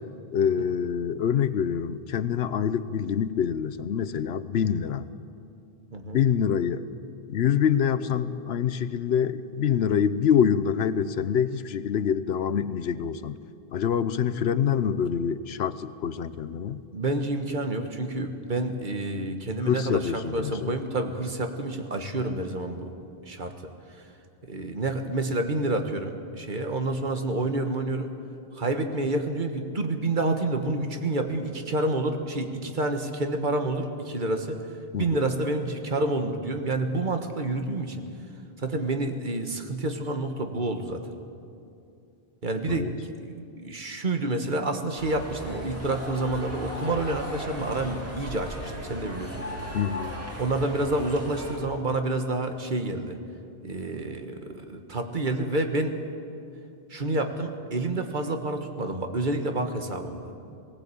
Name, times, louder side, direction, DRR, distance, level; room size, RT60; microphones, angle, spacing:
voice 1, 0.3-5.1 6.1-6.8 7.3-13.4 13.7-16.8 19.6-20.7 34.9-35.2 42.7-42.9 49.7-50.2, left 8 dB, 85° left, 14 dB, 1.0 m, -26 dB
voice 2, 16.9-22.9 23.2-23.7 24.4-28.1 28.5-34.6 35.0-38.0 38.6-41.1 42.4-42.9 43.2-49.4 49.7-49.8 50.4-53.2 53.6-55.9 56.9-60.3, right 2 dB, 50° right, 6 dB, 1.6 m, -28 dB
sound 1, 45.0-51.6, equal, 15° right, 3.3 m, -37 dB
18.5 x 18.0 x 8.5 m, 2.6 s
omnidirectional pair, 1.0 m